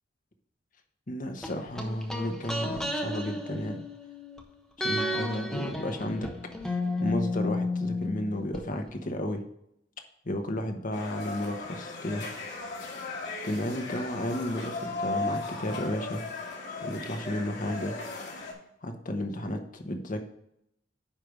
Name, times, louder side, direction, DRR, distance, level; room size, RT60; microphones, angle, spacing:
voice 1, 1.1-3.8 4.8-6.3 6.7-9.4 10.2-12.3 13.4-16.2 16.8-18.0 18.8-20.2, left 1 dB, 45° left, 5 dB, 1.0 m, -33 dB
sound 1, 1.4-4.4 4.8-8.6 8.9-9.0, left 2 dB, 5° left, 1.1 m, -32 dB
sound 2, 10.9-18.5, left 3 dB, 60° left, 2.5 m, -37 dB
9.9 x 3.4 x 6.2 m, 0.76 s
head